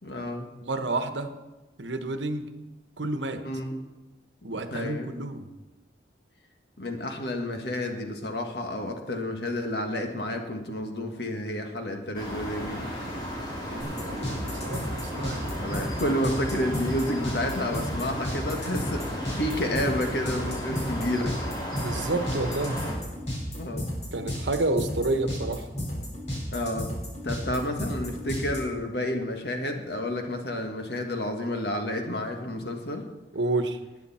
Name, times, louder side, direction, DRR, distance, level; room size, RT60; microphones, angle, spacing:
voice 1, 0.0-0.5 3.4-3.8 4.5-5.1 6.8-12.9 15.6-21.5 23.5-23.9 26.5-26.9 27.2-33.1, left 1 dB, 65° left, 4 dB, 1.7 m, -30 dB
voice 2, 0.6-1.3 1.8-2.5 3.0-3.5 4.4-5.5 13.6-16.1 21.7-22.8 24.1-25.7 33.3-33.8, right 2 dB, 90° right, 8 dB, 1.1 m, -30 dB
sound 1, 12.1-22.9, equal, 25° left, 3.0 m, -35 dB
sound 2, 13.8-28.6, equal, 40° left, 4.7 m, -33 dB
19.0 x 9.5 x 4.3 m, 1.1 s
head